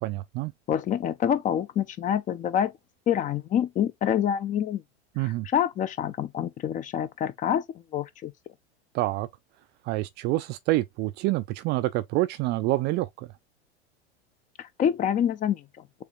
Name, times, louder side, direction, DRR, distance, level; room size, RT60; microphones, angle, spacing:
voice 1, 0.0-0.5 5.2-5.5 8.9-9.3 9.9-13.3, right 17 dB, 30° right, 0.4 m, -27 dB
voice 2, 0.7-2.7 3.1-4.8 5.2-7.6 7.9-8.3 14.6-16.0, left 9 dB, 25° left, 0.5 m, -27 dB
6.9 x 3.0 x 2.3 m
figure-of-eight pair, 85°, 34 cm